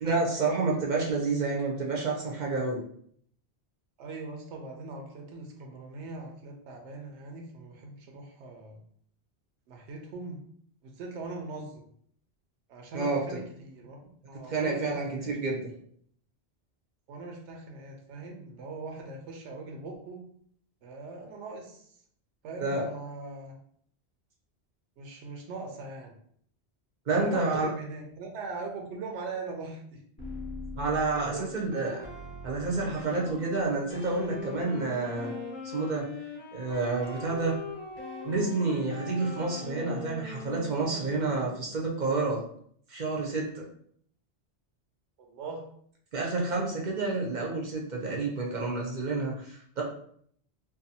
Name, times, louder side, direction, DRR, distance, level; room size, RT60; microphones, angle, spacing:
voice 1, 0.0-2.8 12.9-13.4 14.5-15.6 22.6-22.8 27.1-27.7 30.7-32.1 32.4-35.3 35.6-36.1 36.5-37.5 38.2-42.4 42.9-43.6 46.1-49.8, right 3 dB, 50° right, -2 dB, 0.6 m, -29 dB
voice 2, 4.0-8.8 9.7-10.4 10.8-11.9 12.7-14.0 14.3-15.4 17.1-20.2 20.8-21.8 22.4-23.5 25.0-26.2 27.1-30.0 31.1-31.5 45.2-45.6, right 3 dB, 85° right, 1 dB, 0.9 m, -41 dB
sound 1, 30.2-36.1 36.7-39.9, left 2 dB, 10° left, 0.9 m, -44 dB
Wind instrument woodwind instrument, 34.1-41.7, left 4 dB, 35° left, 0.4 m, -41 dB
2.6 x 2.2 x 2.7 m, 0.64 s
omnidirectional pair, 1.1 m